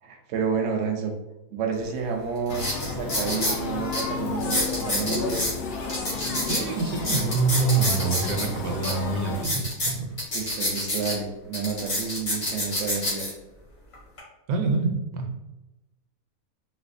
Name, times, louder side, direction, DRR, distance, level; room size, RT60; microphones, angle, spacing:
voice 1, 0.0-1.2 1.5-5.5 10.3-13.3, right 5 dB, 70° right, 3 dB, 0.8 m, -30 dB
sound 1, 1.8-1.9 2.5-3.6 3.9-4.0 4.4-5.5 5.9-8.5 8.8-8.9 9.3-11.1 11.5-13.3 13.9-14.2, left 1 dB, 45° left, 1.4 m, -27 dB
sound 2, 2.5-9.4, left 4 dB, 80° left, 0.5 m, -32 dB
voice 2, 6.5-10.1 14.5-15.4, right 4 dB, 85° right, 4 dB, 1.1 m, -26 dB
4.0 x 2.3 x 2.5 m, 0.99 s
omnidirectional pair, 1.5 m